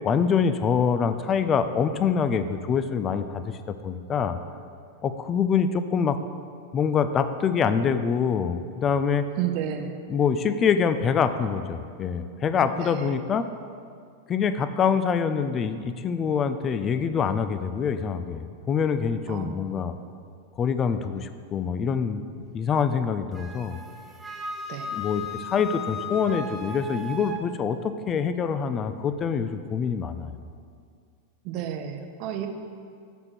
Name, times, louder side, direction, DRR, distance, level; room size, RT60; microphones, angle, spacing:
voice 1, 0.0-4.4 5.0-6.2 6.7-9.3 10.1-13.5 14.3-20.0 20.6-22.2 22.5-23.8 24.9-30.3, left 6 dB, 25° left, 11 dB, 0.3 m, -25 dB
voice 2, 9.4-10.0 12.8-13.1 19.3-19.6 24.7-24.9 31.4-32.5, right 10 dB, 40° right, 5 dB, 0.6 m, -31 dB
Wind instrument woodwind instrument, 23.3-27.4, left 3 dB, 10° right, 0.8 m, -36 dB
9.0 x 3.6 x 4.4 m, 2.2 s
figure-of-eight pair, 90°, 0 cm